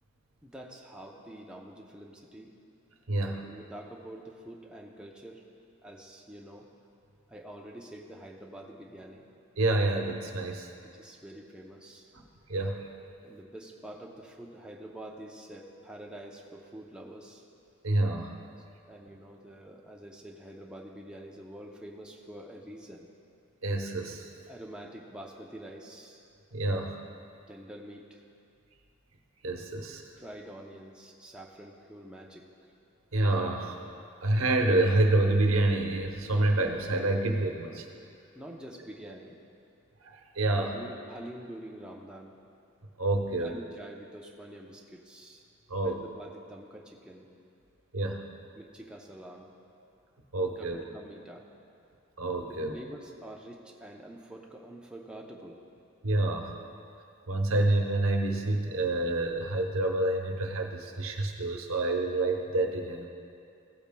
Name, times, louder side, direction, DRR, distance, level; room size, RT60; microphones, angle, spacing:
voice 1, 0.4-2.5 3.2-5.5 5.8-6.7 7.3-9.3 10.8-12.1 13.2-17.4 18.9-23.1 24.5-26.2 27.5-28.2 30.2-32.7 38.3-39.4 40.7-42.4 43.4-45.4 45.8-47.3 48.5-49.5 50.5-51.5 52.4-55.6, right 1 dB, 5° right, -1 dB, 0.6 m, -46 dB
voice 2, 3.1-3.4 9.6-10.7 12.1-12.2 12.5-12.9 17.8-18.4 23.6-24.3 26.5-27.0 29.4-30.0 33.1-33.8 34.2-37.9 40.0-40.8 43.0-43.5 45.7-46.0 47.9-48.3 50.3-50.8 52.2-52.7 56.0-56.6 57.3-63.1, right 2 dB, 90° right, 3 dB, 0.9 m, -28 dB
15.5 x 8.7 x 2.2 m, 2.5 s
head